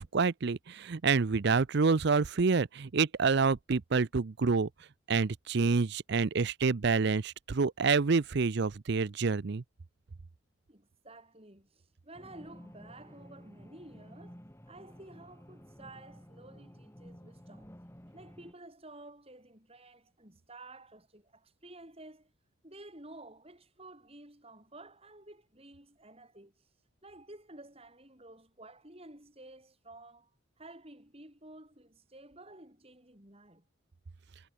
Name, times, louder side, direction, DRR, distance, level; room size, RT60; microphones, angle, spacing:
voice 1, 0.0-4.7 5.1-9.6, right 4 dB, 55° right, 0.5 m, -28 dB
voice 2, 10.7-17.7 18.1-22.3 22.6-26.7 27.0-30.3 30.6-33.6, right 2 dB, 30° right, 7.2 m, -52 dB
sound 1, 12.1-18.5, equal, 10° left, 2.9 m, -53 dB
head